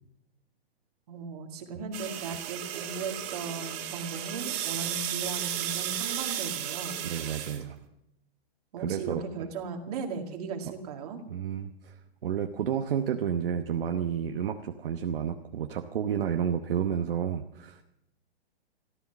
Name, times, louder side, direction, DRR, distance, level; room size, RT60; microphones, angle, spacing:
voice 1, 1.1-7.0 8.7-11.2, right 4 dB, 35° right, 4 dB, 2.1 m, -37 dB
sound 1, 1.9-7.6, right 11 dB, 10° right, 0.6 m, -34 dB
voice 2, 7.0-7.8 8.8-9.2 11.3-11.9 12.2-17.8, right 8 dB, 60° right, 5 dB, 1.0 m, -30 dB
13.5 x 13.5 x 7.0 m, 0.84 s
hypercardioid pair, 175°, 32 cm